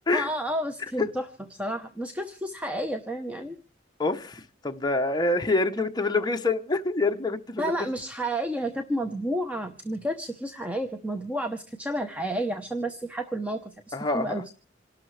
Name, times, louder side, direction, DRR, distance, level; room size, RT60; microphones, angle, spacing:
voice 1, 0.1-1.2 1.5-3.6 7.6-14.5, right 1 dB, 5° right, 0.8 m, -31 dB
voice 2, 4.0-7.7 13.9-14.4, left 2 dB, 20° left, 0.9 m, -26 dB
27.5 x 12.0 x 3.3 m
head